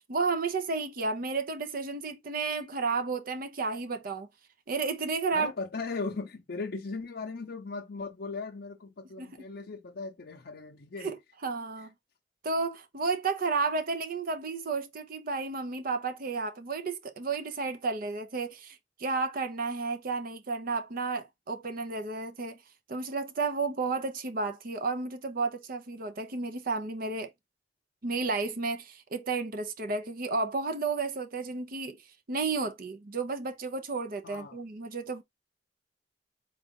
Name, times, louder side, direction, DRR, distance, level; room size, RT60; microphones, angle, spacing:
voice 1, 0.1-4.3 4.7-5.5 9.2-9.3 11.0-11.2 11.4-11.9 12.4-22.6 22.9-27.3 28.0-32.0 32.3-35.2, right 4 dB, 50° right, 0.7 m, -32 dB
voice 2, 5.3-11.1 11.8-11.9 34.2-34.6, left 4 dB, 60° left, 0.6 m, -38 dB
4.0 x 2.4 x 3.7 m
head